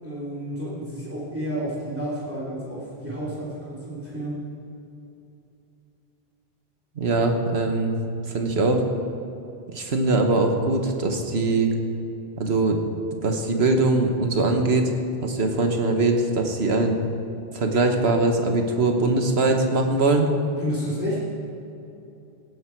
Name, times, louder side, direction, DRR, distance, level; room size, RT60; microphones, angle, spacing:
voice 1, 0.0-4.4 9.7-9.9 20.6-21.2, right 1 dB, 10° right, -8 dB, 3.2 m, -31 dB
voice 2, 6.9-7.9 8.3-8.8 9.7-11.7 12.4-12.8 13.2-14.9 15.2-17.0 17.5-20.3, right 2 dB, 80° right, 4 dB, 1.5 m, -22 dB
17.0 x 9.9 x 4.6 m, 2.8 s
omnidirectional pair, 1.1 m